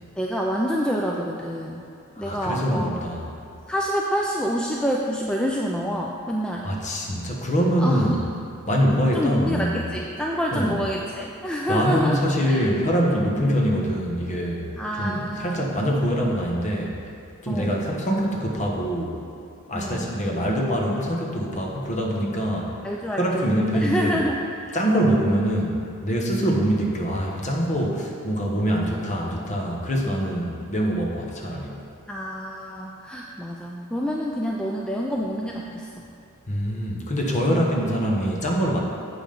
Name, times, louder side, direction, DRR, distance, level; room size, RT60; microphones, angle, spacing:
voice 1, 0.2-1.8 2.2-3.0 3.7-6.7 7.8-8.2 9.1-12.6 13.4-13.5 14.8-15.6 17.5-17.8 19.7-20.1 22.8-23.5 23.8-24.4 24.7-25.4 32.1-36.1, equal, 5° left, -2 dB, 0.4 m, -27 dB
voice 2, 2.2-3.2 6.6-8.3 8.7-9.8 10.5-10.8 11.7-16.9 17.4-19.2 19.7-22.7 23.2-24.2 24.7-31.8 36.5-38.8, equal, 35° left, -2 dB, 1.2 m, -24 dB
8.4 x 5.7 x 5.2 m, 2.5 s
head